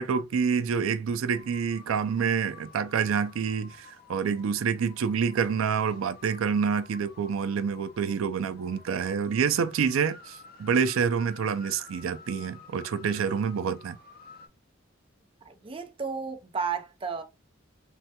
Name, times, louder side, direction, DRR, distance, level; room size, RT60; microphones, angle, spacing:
voice 1, 0.0-14.0, right 6 dB, 80° right, 0.4 m, -27 dB
sound 1, 1.3-14.5, left 4 dB, 50° left, 0.6 m, -51 dB
voice 2, 15.4-17.2, right 5 dB, 25° right, 0.5 m, -33 dB
3.2 x 2.2 x 2.8 m
head